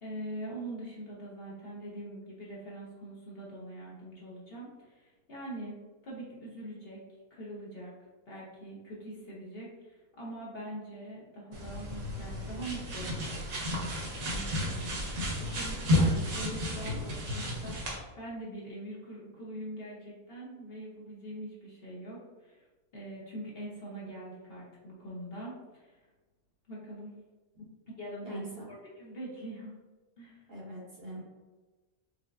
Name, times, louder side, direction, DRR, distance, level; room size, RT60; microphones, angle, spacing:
voice 1, 0.0-5.8 6.0-7.0 7.3-7.9 8.3-13.4 14.2-14.9 15.4-22.7 22.9-26.1 26.7-27.1 28.0-29.7 30.2-30.4, right 1 dB, 45° left, -5 dB, 1.0 m, -43 dB
sound 1, 11.5-18.0, left 1 dB, 65° right, 1.4 m, -32 dB
voice 2, 28.2-28.7 30.5-31.2, equal, 50° right, -3 dB, 1.0 m, -43 dB
4.8 x 3.1 x 2.5 m, 1.2 s
omnidirectional pair, 1.6 m